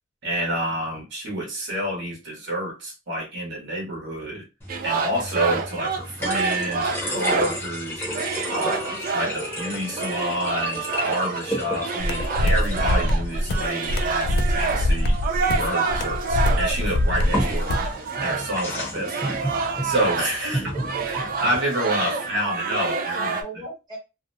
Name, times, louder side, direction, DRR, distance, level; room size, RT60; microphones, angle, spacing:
voice 1, 0.2-4.4 4.8-8.0 8.5-15.2 15.6-17.9 18.2-20.7 21.0-23.4, equal, 60° right, -2 dB, 1.1 m, -29 dB
sound 1, 4.6-21.6, equal, 10° left, 0.8 m, -33 dB
sound 2, 4.7-7.7 8.0-20.5 20.7-23.4, right 4 dB, 45° right, 0.4 m, -28 dB
voice 2, 8.5-9.0 20.4-21.4 22.1-22.6 22.9-24.0, right 1 dB, 20° right, -4 dB, 1.0 m, -36 dB
sound 3, 12.0-17.9, left 1 dB, 55° left, 0.3 m, -23 dB
2.6 x 2.1 x 2.6 m, 0.27 s
head